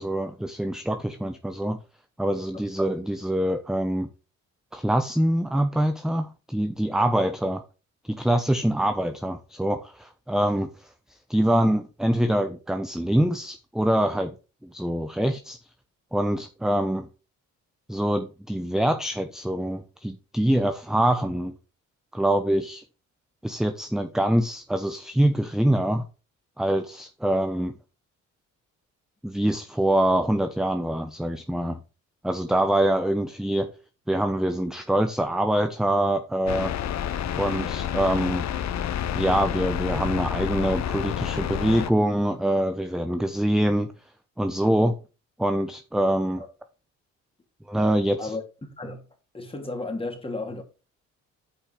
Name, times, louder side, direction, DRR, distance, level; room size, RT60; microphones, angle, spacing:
voice 1, 0.0-1.8 2.2-4.1 4.7-7.6 8.1-10.7 11.3-14.3 14.6-15.6 16.1-17.1 17.9-21.5 22.1-22.8 23.4-26.0 26.6-27.7 29.2-31.8 32.2-33.7 34.1-36.7 37.4-38.5 39.1-43.9 44.4-44.9 45.4-46.4 47.7-48.3, right 1 dB, ahead, 0.8 m, -24 dB
sound 1, 36.5-41.9, left 9 dB, 65° left, 0.9 m, -29 dB
voice 2, 49.3-50.6, left 2 dB, 20° left, 2.8 m, -33 dB
8.7 x 5.4 x 4.8 m
cardioid pair, 90°, 30 cm